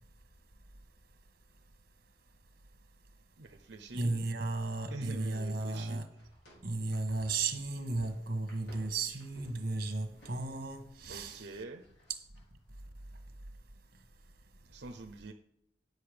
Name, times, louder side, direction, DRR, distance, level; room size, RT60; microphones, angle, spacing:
voice 1, 3.4-4.1 4.9-6.0 11.1-11.8 14.7-15.3, right 2 dB, 75° right, 0.8 m, -45 dB
voice 2, 3.9-6.1 6.6-11.5, right 3 dB, 60° right, 1.4 m, -34 dB
sound 1, 4.2-13.1, equal, 70° left, 3.5 m, -59 dB
10.0 x 6.6 x 5.1 m
head